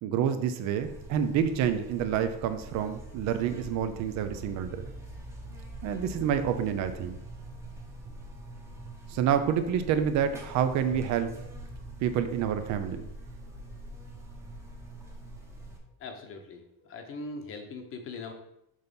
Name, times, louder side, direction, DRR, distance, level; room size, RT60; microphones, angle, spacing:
voice 1, 0.0-4.8 5.8-7.2 9.1-11.3 12.0-13.0, right 8 dB, 50° right, 9 dB, 0.6 m, -28 dB
Buzz, 0.8-15.8, right 1 dB, 5° right, 0.9 m, -44 dB
voice 2, 16.0-18.3, left 3 dB, 35° left, 5 dB, 0.9 m, -41 dB
6.3 x 4.0 x 5.3 m, 0.78 s
cardioid pair, 175°, 36 cm